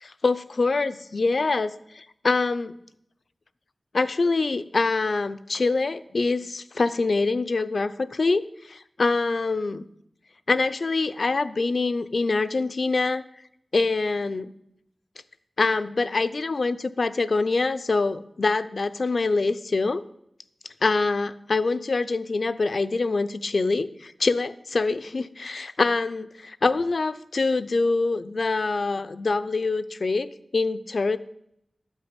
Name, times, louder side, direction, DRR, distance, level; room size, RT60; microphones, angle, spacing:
voice 1, 0.0-2.7 3.9-8.4 8.7-9.8 10.5-13.2 13.7-14.5 15.6-20.0 20.8-31.2, left 3 dB, 65° left, 13 dB, 0.6 m, -25 dB
12.5 x 5.5 x 9.0 m, 0.76 s
wide cardioid pair, 85°, 0 cm